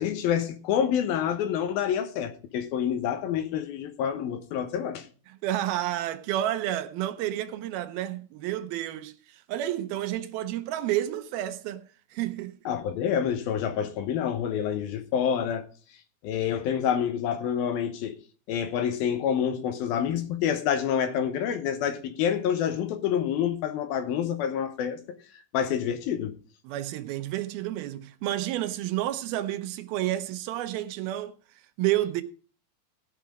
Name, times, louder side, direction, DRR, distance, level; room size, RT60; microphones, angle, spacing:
voice 1, 0.0-5.1 12.7-15.6 16.2-18.2 18.5-25.0 25.5-26.4, left 8 dB, 75° left, 2.9 m, -27 dB
voice 2, 5.3-11.8 12.1-12.6 26.6-31.4 31.8-32.2, right 13 dB, 80° right, 2.7 m, -30 dB
17.0 x 5.8 x 5.0 m
omnidirectional pair, 4.4 m